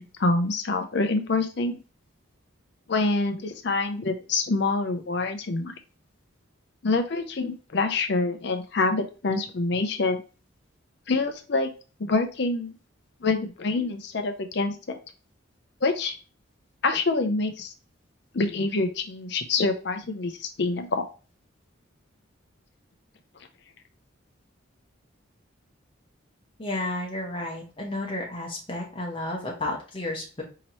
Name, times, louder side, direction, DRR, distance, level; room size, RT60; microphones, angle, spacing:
voice 1, 0.0-1.8 2.9-5.7 6.8-10.2 11.1-11.7 12.0-12.7 13.2-15.0 15.8-16.1 16.8-17.7 18.3-21.0, left 3 dB, 55° left, 6 dB, 0.5 m, -26 dB
voice 2, 26.6-30.4, left 2 dB, 25° left, -1 dB, 0.9 m, -32 dB
4.2 x 2.9 x 3.0 m, 0.35 s
head